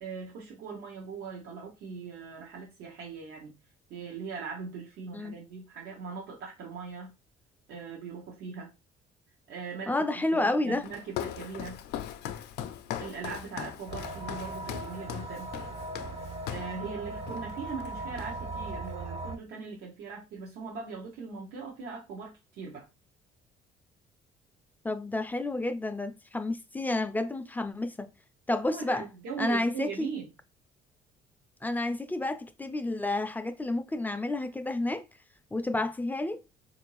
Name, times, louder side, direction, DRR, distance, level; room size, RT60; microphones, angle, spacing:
voice 1, 0.0-3.5 3.9-7.1 7.7-8.7 9.5-11.8 13.0-15.5 16.5-22.9 28.7-30.3, right 5 dB, 80° right, 0.8 m, -40 dB
voice 2, 9.9-10.9 24.8-28.1 28.5-29.1 29.4-30.1 31.6-35.0 35.5-36.4, left 2 dB, 10° left, 0.4 m, -30 dB
Walk footsteps, 10.8-16.8 17.3-17.5 17.8-18.6, left 10 dB, 75° left, 0.4 m, -39 dB
sound 1, 13.9-19.4, right 2 dB, 40° right, 0.6 m, -39 dB
3.6 x 2.6 x 3.0 m
cardioid pair, 110°, 17 cm